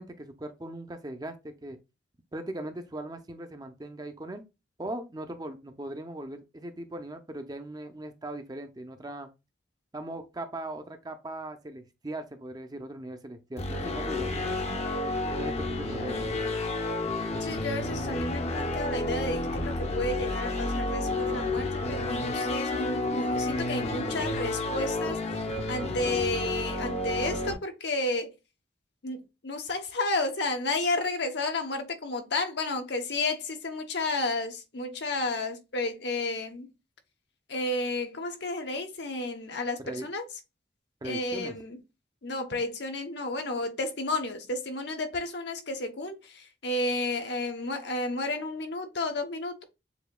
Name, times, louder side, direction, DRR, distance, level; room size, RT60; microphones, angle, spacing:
voice 1, 0.0-1.8 2.3-4.4 4.8-9.3 9.9-14.8 15.3-16.3 39.8-40.1 41.0-41.5, right 1 dB, 20° right, 0.6 m, -39 dB
sound 1, 13.6-27.5, left 2 dB, 35° left, 0.7 m, -30 dB
voice 2, 17.4-25.2 25.7-28.3 29.0-36.7 37.5-40.2 41.0-41.8 42.2-49.6, left 2 dB, 65° left, 1.0 m, -32 dB
6.9 x 2.8 x 2.2 m
head